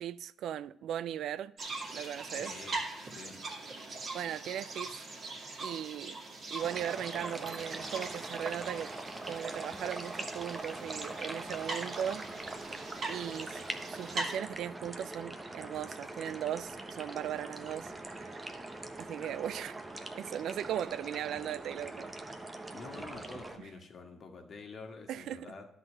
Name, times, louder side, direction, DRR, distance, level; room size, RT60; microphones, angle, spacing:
voice 1, 0.0-1.5 1.9-2.5 4.1-5.0 5.6-6.2 6.5-8.9 9.3-12.3 13.1-13.6 13.9-18.5 19.0-19.8 20.1-22.1 25.1-25.5, right 10 dB, 75° right, 0.3 m, -38 dB
sound 1, 1.6-14.4, right 3 dB, 45° right, 2.2 m, -42 dB
voice 2, 2.3-3.3 22.7-25.6, left 4 dB, 50° left, 1.6 m, -48 dB
sound 2, 6.6-23.6, right 2 dB, 20° right, 1.0 m, -42 dB
11.0 x 4.0 x 6.2 m
cardioid pair, 90°, 0 cm